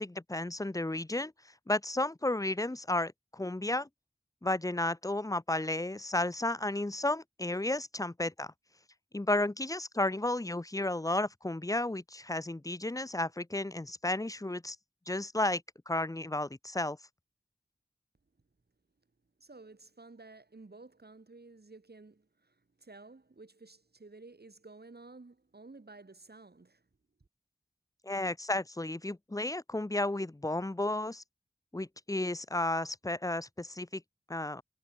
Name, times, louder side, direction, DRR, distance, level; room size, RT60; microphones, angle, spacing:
voice 1, 0.0-1.3 1.7-3.9 4.4-8.5 9.1-14.8 15.1-17.0 28.0-31.2 31.7-34.0 34.3-34.6, left 2 dB, 20° left, 0.8 m, -33 dB
voice 2, 19.4-26.8, right 3 dB, 65° right, 6.8 m, -53 dB
wide cardioid pair, 60°, 18 cm